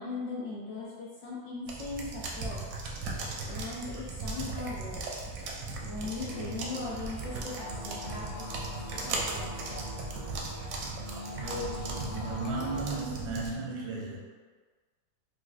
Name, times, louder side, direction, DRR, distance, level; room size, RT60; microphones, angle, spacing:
voice 1, 0.0-2.6 3.4-5.0 5.8-8.5 8.8-9.5, left 3 dB, 65° left, -6 dB, 0.8 m, -39 dB
sound 1, 1.7-13.5, right 3 dB, 70° right, 0.9 m, -37 dB
sound 2, 6.3-13.0, left 2 dB, 85° left, 1.6 m, -43 dB
voice 2, 11.2-14.2, right 2 dB, 90° right, -3 dB, 1.3 m, -35 dB
3.9 x 2.5 x 2.3 m, 1.4 s
omnidirectional pair, 1.8 m